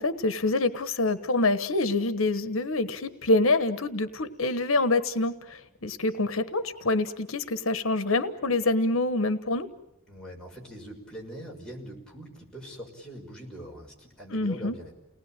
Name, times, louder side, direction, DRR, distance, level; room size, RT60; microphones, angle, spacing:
voice 1, 0.0-9.7 14.3-14.7, left 2 dB, 75° left, 11 dB, 1.2 m, -26 dB
voice 2, 10.1-14.9, equal, 5° left, -3 dB, 6.1 m, -42 dB
30.0 x 19.5 x 9.0 m, 0.91 s
head